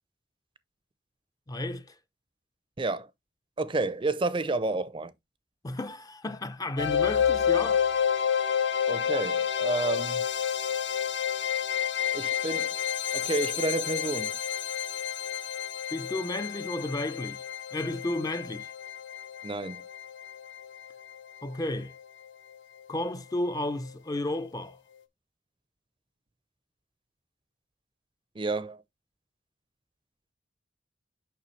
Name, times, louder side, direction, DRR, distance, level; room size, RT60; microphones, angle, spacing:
voice 1, 1.5-1.9 5.6-7.8 15.9-17.4 17.7-18.7 21.4-21.9 22.9-24.8, left 1 dB, 20° left, 0.4 m, -32 dB
voice 2, 2.8-3.1 3.6-5.1 8.9-10.3 12.1-12.8 13.1-14.4 19.4-19.8 28.3-28.8, right 2 dB, 25° right, 0.5 m, -30 dB
sound 1, 6.8-21.7, left 8 dB, 70° left, 0.8 m, -30 dB
6.8 x 5.6 x 3.1 m
head